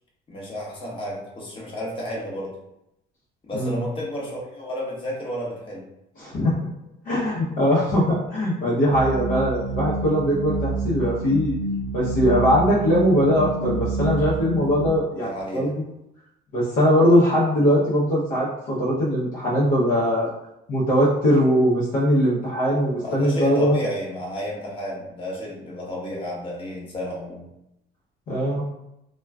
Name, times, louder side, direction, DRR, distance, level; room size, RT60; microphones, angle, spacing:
voice 1, 0.3-2.5 3.4-5.8 15.2-15.7 23.0-27.5, equal, 30° left, -4 dB, 1.0 m, -32 dB
voice 2, 6.2-6.7 7.0-11.5 11.9-15.8 16.5-20.3 20.7-23.8 28.3-28.6, equal, 55° left, -6 dB, 0.7 m, -21 dB
sound 1, 8.9-14.9, right 2 dB, 45° right, 0.4 m, -28 dB
2.2 x 2.2 x 3.4 m, 0.84 s
cardioid pair, 110°, 17 cm